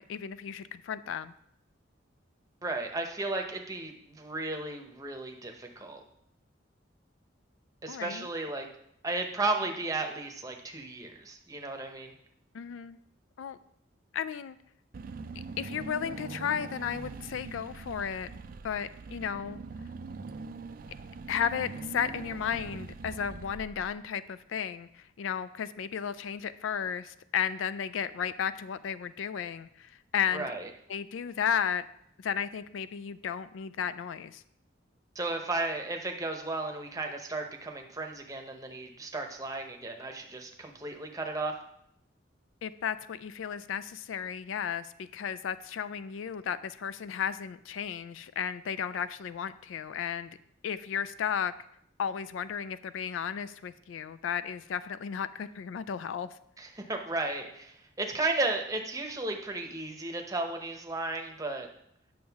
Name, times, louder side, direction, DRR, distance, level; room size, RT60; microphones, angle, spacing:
voice 1, 0.0-1.3 7.9-8.3 12.5-13.0 13.4-13.6 14.1-14.6 15.6-18.3 18.6-19.6 21.3-30.5 30.9-31.9 32.2-34.4 42.6-50.3 50.6-51.5 52.0-56.3, left 8 dB, 80° left, 14 dB, 0.3 m, -34 dB
voice 2, 2.6-6.0 7.8-8.7 9.0-12.1 30.3-30.7 35.1-41.6 56.6-61.7, right 2 dB, 15° right, 3 dB, 0.8 m, -34 dB
Car / Engine, 14.9-24.1, right 4 dB, 45° right, 0.3 m, -42 dB
8.8 x 6.3 x 3.5 m, 0.74 s
head